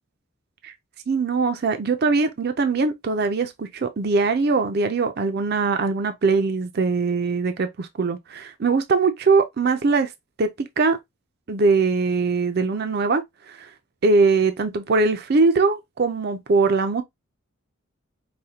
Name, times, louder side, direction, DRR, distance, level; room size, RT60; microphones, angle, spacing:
voice 1, 1.1-10.1 10.4-11.0 11.5-13.7 14.0-17.0, right 4 dB, 50° right, 0.4 m, -21 dB
4.8 x 2.2 x 2.7 m
head